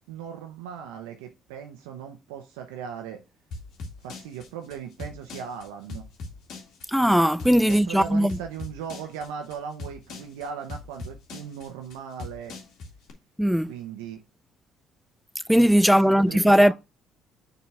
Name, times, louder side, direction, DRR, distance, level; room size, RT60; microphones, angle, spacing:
voice 1, 0.1-3.2 4.0-6.1 7.7-12.6 13.7-14.2 16.0-16.7, right 7 dB, 85° right, 0.8 m, -38 dB
sound 1, 3.5-13.1, left 3 dB, 65° left, 2.0 m, -40 dB
voice 2, 6.9-8.4 13.4-13.7 15.5-16.7, equal, ahead, 0.3 m, -19 dB
7.1 x 4.1 x 4.7 m
hypercardioid pair, 60°, 0 cm